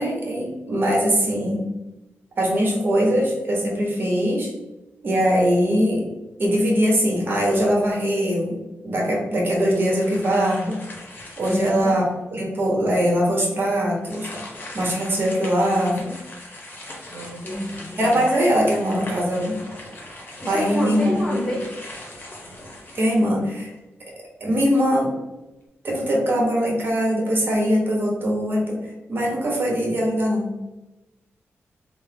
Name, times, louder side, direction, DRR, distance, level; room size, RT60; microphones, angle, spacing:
voice 1, 0.0-1.7 2.4-4.5 5.0-6.0 6.4-8.6 8.8-10.8 11.4-12.0 12.3-14.3 14.7-16.2 18.0-19.6 20.5-21.5 22.9-23.7 24.4-25.1 25.8-28.8 29.1-30.5, equal, 50° right, -2 dB, 1.0 m, -21 dB
sound 1, 9.5-12.1 12.6-12.7 14.0-23.8, left 1 dB, 45° left, 0.8 m, -40 dB
voice 2, 11.4-11.9 17.1-18.2 20.4-21.7, left 1 dB, 10° left, -6 dB, 1.3 m, -28 dB
3.4 x 2.0 x 3.3 m, 1.0 s
wide cardioid pair, 125°, 5 cm